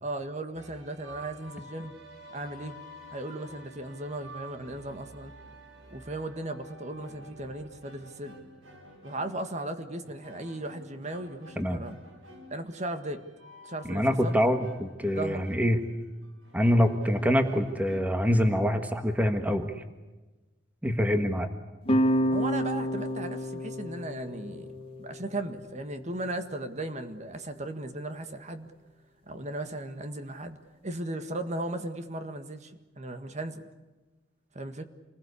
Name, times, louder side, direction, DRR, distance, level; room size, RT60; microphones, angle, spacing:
voice 1, 0.0-2.0 2.3-2.8 3.1-5.3 5.9-8.3 9.0-11.9 12.5-13.2 13.6-14.4 15.1-15.5 22.3-24.7 25.0-28.7 29.3-30.6 30.8-33.7 34.5-34.9, right 2 dB, 35° right, 8 dB, 1.8 m, -36 dB
sound 1, 0.5-18.6, equal, 80° right, 5.0 m, -50 dB
voice 2, 13.9-15.8 16.5-19.8 20.8-21.5, equal, 10° right, 7 dB, 1.6 m, -25 dB
sound 2, 21.9-27.0, equal, 30° left, 2.6 m, -30 dB
27.5 x 20.5 x 8.4 m, 1.2 s
head